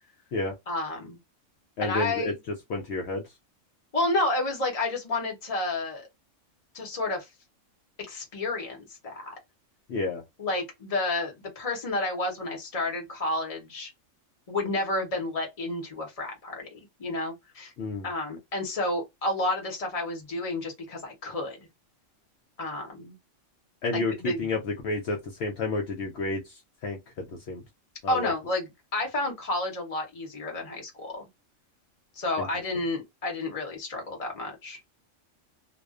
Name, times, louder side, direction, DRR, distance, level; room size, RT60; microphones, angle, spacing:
voice 1, 0.7-1.2 1.8-2.4 3.9-6.1 6.7-7.3 8.1-9.3 10.4-13.9 14.5-17.7 18.0-21.7 22.6-23.2 23.9-24.5 28.1-31.3 32.2-34.8, left 2 dB, 30° left, 0.8 m, -30 dB
voice 2, 1.8-2.3 2.7-3.2 9.9-10.2 17.8-18.1 23.8-26.5 26.8-27.6 28.0-28.3 32.4-32.5, left 3 dB, 65° left, 0.8 m, -30 dB
2.4 x 2.2 x 2.3 m
omnidirectional pair, 1.3 m